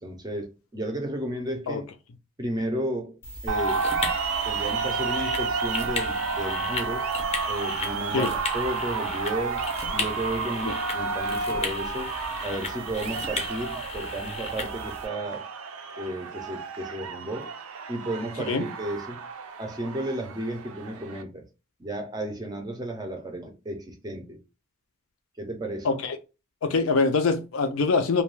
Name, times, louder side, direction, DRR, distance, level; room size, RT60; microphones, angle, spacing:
voice 1, 0.0-1.9 2.4-3.9 4.5-7.1 7.5-12.1 12.4-15.5 16.0-17.5 17.9-19.2 19.6-21.5 21.8-24.4 25.4-25.9, right 1 dB, 20° right, 0.5 m, -33 dB
sound 1, 3.2-15.1, left 3 dB, 30° left, 0.6 m, -35 dB
sound 2, 3.5-21.2, right 5 dB, 85° right, 0.4 m, -31 dB
voice 2, 25.8-26.2 26.6-28.2, left 4 dB, 75° left, 0.5 m, -23 dB
2.3 x 2.2 x 3.1 m
head